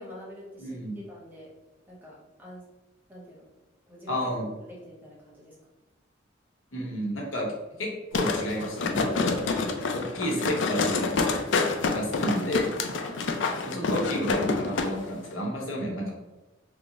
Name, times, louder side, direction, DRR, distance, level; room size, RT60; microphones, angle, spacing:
voice 1, 0.0-1.5 1.9-2.6 3.1-3.5 3.9-4.3 4.6-5.6 13.0-13.3, equal, 10° right, -6 dB, 1.0 m, -46 dB
voice 2, 0.6-1.0 4.1-4.4 6.7-7.5 7.8-9.4 9.9-11.1 11.9-12.7 13.6-16.1, equal, 85° left, -3 dB, 1.0 m, -31 dB
sound 1, 8.1-14.9 15.2-15.3, left 4 dB, 65° left, 0.4 m, -27 dB
3.4 x 2.1 x 4.0 m, 1.1 s
head